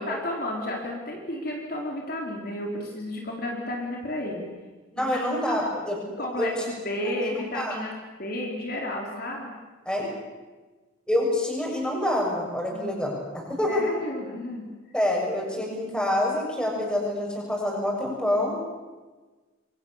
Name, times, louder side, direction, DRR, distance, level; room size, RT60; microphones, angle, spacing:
voice 1, 0.0-4.5 5.0-5.1 5.5-5.6 6.2-6.5 6.8-7.9 8.2-9.5 12.7-13.0 13.7-14.6 16.7-16.8, left 1 dB, 45° left, 0 dB, 4.3 m, -32 dB
voice 2, 4.9-6.5 7.0-7.8 9.9-10.1 11.1-13.8 14.9-18.6, left 1 dB, 5° left, -1 dB, 7.2 m, -27 dB
27.0 x 25.0 x 7.4 m, 1.2 s
head